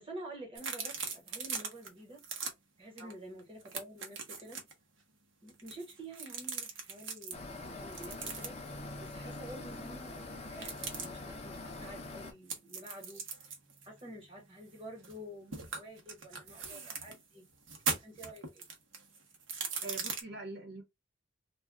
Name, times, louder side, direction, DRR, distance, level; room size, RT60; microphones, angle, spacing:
voice 1, 0.0-2.2 2.8-4.6 5.4-8.6 9.0-13.2 13.8-17.4 17.9-18.6, right 1 dB, 30° right, 1.3 m, -49 dB
sound 1, 0.6-1.9 2.2-2.5 3.0-3.1 3.4-4.7 5.5-7.4 7.9-8.7 10.5-11.1 12.5-15.2 15.5-17.2 17.6-20.2, right 5 dB, 80° right, 0.9 m, -39 dB
sound 2, 7.3-12.3, left 2 dB, 35° left, 0.6 m, -44 dB
voice 2, 19.8-20.8, right 2 dB, 55° right, 1.1 m, -44 dB
2.5 x 2.2 x 3.3 m
head